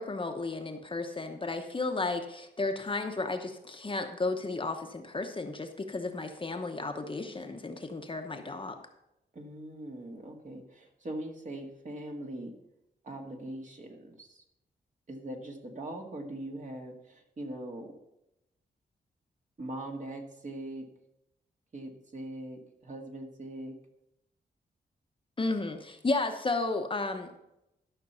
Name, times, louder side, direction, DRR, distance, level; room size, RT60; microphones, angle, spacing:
voice 1, 0.0-8.8 25.4-27.4, left 3 dB, 30° left, 5 dB, 0.9 m, -33 dB
voice 2, 9.3-12.5 13.0-14.4 15.1-17.9 19.6-20.9 21.7-23.8, right 1 dB, 45° right, 2 dB, 1.9 m, -41 dB
12.0 x 6.0 x 5.6 m, 0.86 s
wide cardioid pair, 100°, 18 cm